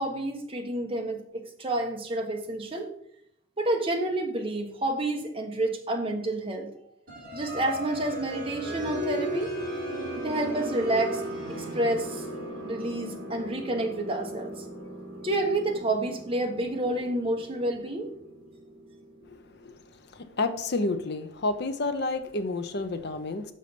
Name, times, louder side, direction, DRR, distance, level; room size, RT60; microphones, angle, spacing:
voice 1, 0.0-2.9 3.6-6.7 7.3-9.5 10.2-11.2 11.5-12.2 12.6-14.6 15.2-18.1, right 1 dB, 30° right, 2 dB, 1.1 m, -29 dB
sound 1, 7.1-19.6, right 1 dB, 45° right, 3.2 m, -37 dB
voice 2, 19.2-19.7 20.1-23.5, left 3 dB, 55° left, 9 dB, 0.7 m, -30 dB
6.6 x 5.5 x 5.1 m, 0.71 s
head